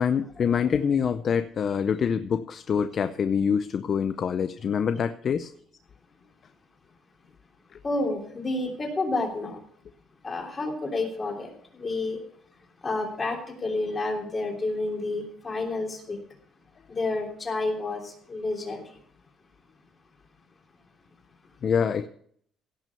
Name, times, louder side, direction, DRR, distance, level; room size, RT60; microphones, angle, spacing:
voice 1, 0.0-5.5 21.6-22.1, left 7 dB, 40° left, 10 dB, 0.6 m, -25 dB
voice 2, 7.8-9.6 10.2-11.5 11.8-12.2 12.8-16.2 16.9-18.8, left 2 dB, 25° left, 0 dB, 3.2 m, -30 dB
17.0 x 6.1 x 7.0 m, 0.63 s
cardioid pair, 150°, 0 cm